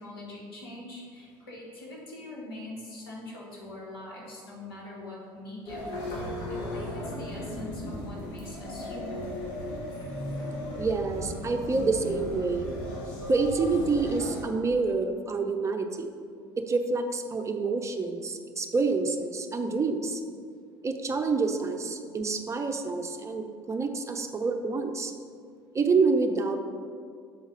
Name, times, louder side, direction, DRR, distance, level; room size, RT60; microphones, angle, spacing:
voice 1, 0.0-9.3, left 2 dB, 85° left, -3 dB, 1.6 m, -43 dB
sound 1, 5.7-14.4, left 1 dB, 65° left, 1.5 m, -36 dB
voice 2, 10.8-12.7 13.3-16.1 16.6-20.2 20.8-25.1 25.7-26.6, right 4 dB, 25° right, 5 dB, 0.7 m, -27 dB
7.1 x 3.9 x 5.2 m, 2.2 s
hypercardioid pair, 65°, 12 cm